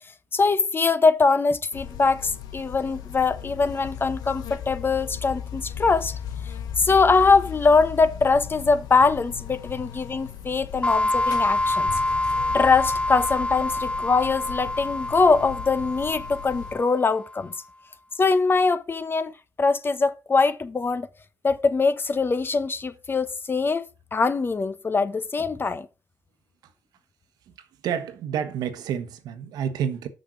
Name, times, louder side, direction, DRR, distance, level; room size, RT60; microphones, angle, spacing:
voice 1, 0.3-6.2 6.8-11.9 12.5-17.5 18.2-19.3 19.6-21.1 21.4-25.9, left 4 dB, 35° left, 1.0 m, -22 dB
Buzz, 1.7-16.7, left 9 dB, 90° left, 0.9 m, -37 dB
sound 1, 10.8-17.3, left 2 dB, 20° left, 0.6 m, -27 dB
voice 2, 27.5-30.1, right 8 dB, 85° right, 1.2 m, -29 dB
6.5 x 6.3 x 6.1 m
cardioid pair, 75°, 7 cm